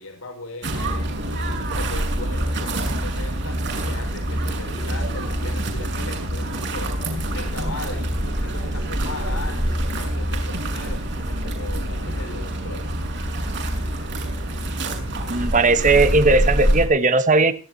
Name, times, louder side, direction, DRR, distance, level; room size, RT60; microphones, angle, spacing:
voice 1, 0.0-12.8, left 2 dB, 90° left, 4 dB, 5.6 m, -38 dB
sound 1, 0.6-16.9, right 1 dB, 60° right, 6.6 m, -25 dB
voice 2, 15.3-17.5, right 3 dB, 40° right, 11 dB, 1.4 m, -17 dB
27.5 x 11.5 x 2.9 m, 0.35 s
head